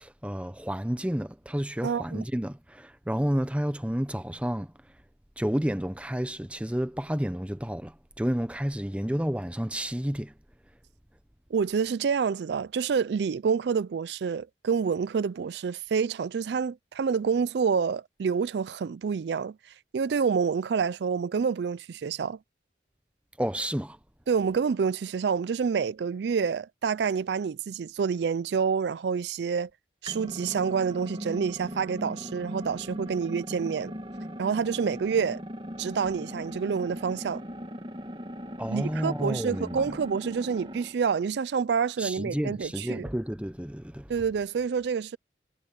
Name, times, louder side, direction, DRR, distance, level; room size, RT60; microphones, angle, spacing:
voice 1, 0.0-5.0 5.4-10.4 23.4-24.0 38.6-40.0 42.0-44.1, equal, 5° right, 0.9 m, -31 dB
voice 2, 1.8-2.2 11.5-19.5 19.9-22.4 24.3-29.7 30.0-33.9 34.4-35.4 35.8-37.4 38.7-43.0 44.1-45.2, right 6 dB, 80° right, 0.4 m, -28 dB
sound 1, 30.1-41.0, equal, 30° right, 2.5 m, -39 dB
head